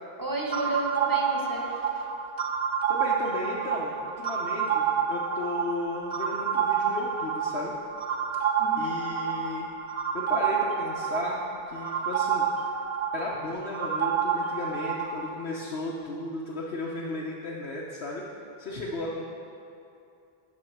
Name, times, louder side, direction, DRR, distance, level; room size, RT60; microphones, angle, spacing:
voice 1, 0.2-2.0 8.6-8.9, right 2 dB, 20° right, -2 dB, 1.1 m, -32 dB
sound 1, 0.5-15.3, right 7 dB, 50° right, 0.5 m, -29 dB
voice 2, 2.9-7.7 8.8-9.7 10.1-12.5 13.1-18.2 18.6-19.3, left 2 dB, 85° left, -4 dB, 1.1 m, -35 dB
7.5 x 6.0 x 6.4 m, 2.6 s
omnidirectional pair, 1.0 m